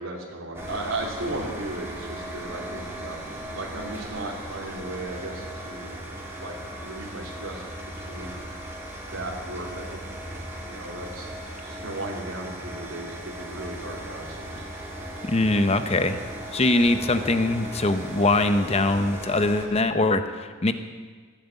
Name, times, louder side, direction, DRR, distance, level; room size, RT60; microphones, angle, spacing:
voice 1, 0.0-6.0 6.4-7.6 8.1-8.4 9.1-10.0 10.6-11.3 11.6-14.6, right 2 dB, 90° right, -3 dB, 2.9 m, -36 dB
sound 1, 0.5-19.7, right 1 dB, 10° right, 2.8 m, -37 dB
voice 2, 15.2-16.2 16.5-20.7, left 2 dB, 30° left, 9 dB, 0.9 m, -22 dB
16.5 x 10.5 x 8.3 m, 1.5 s
head